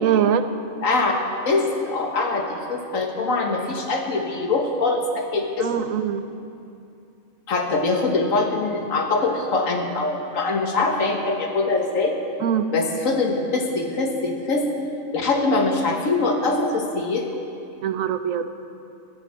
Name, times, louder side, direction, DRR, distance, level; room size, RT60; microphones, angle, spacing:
voice 1, 0.0-0.5 5.6-6.2 12.4-12.7 17.8-18.5, right 9 dB, 75° right, 10 dB, 1.0 m, -22 dB
voice 2, 0.8-1.1 1.5-5.9 7.5-12.2 12.7-14.6 15.1-17.4, left 3 dB, 75° left, 2 dB, 1.7 m, -23 dB
12.0 x 9.7 x 7.4 m, 2.6 s
omnidirectional pair, 1.4 m